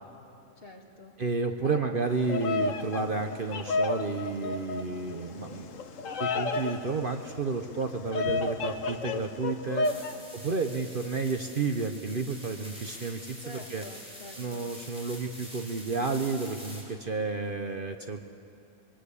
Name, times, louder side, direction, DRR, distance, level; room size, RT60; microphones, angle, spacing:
voice 1, 0.6-1.2 1.6-2.0 9.8-10.3 13.4-14.7, left 1 dB, 40° left, 1 dB, 2.3 m, -45 dB
voice 2, 1.2-5.7 6.2-9.9 10.3-13.8 14.4-18.2, right 4 dB, 45° right, 5 dB, 1.0 m, -31 dB
Bird vocalization bird call bird song, 2.1-10.1, left 3 dB, 65° left, 1.4 m, -32 dB
sound 1, 9.8-16.8, equal, 5° right, 4.3 m, -46 dB
24.5 x 21.5 x 8.4 m, 2.6 s
omnidirectional pair, 1.5 m